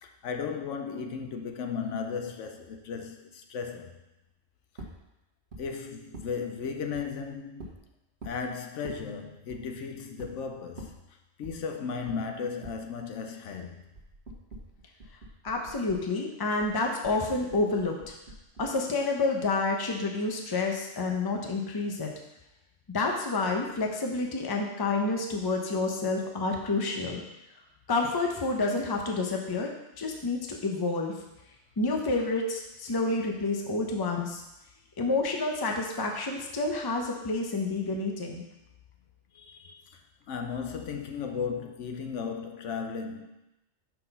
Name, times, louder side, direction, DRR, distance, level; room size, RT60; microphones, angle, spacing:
voice 1, 0.0-4.0 5.6-7.7 8.2-11.0 11.4-13.8 39.3-43.3, left 6 dB, 70° left, 5 dB, 1.0 m, -35 dB
sound 1, 4.8-5.0 5.5-5.6 6.1-6.3 6.9-7.0 7.6-7.8 8.2-8.4 8.8-9.0 9.5-9.6 10.2-10.3 10.8-11.0 11.4-11.6 12.1-12.2 12.6-12.8 14.0-16.1 16.4-18.8, right 1 dB, 55° right, 1.5 m, -45 dB
voice 2, 15.4-18.1 18.6-22.1 22.9-27.2 27.9-29.7 30.0-31.1 31.8-34.4 35.0-38.4, left 3 dB, 20° left, 1 dB, 0.7 m, -29 dB
6.0 x 4.7 x 5.4 m, 0.93 s
omnidirectional pair, 1.3 m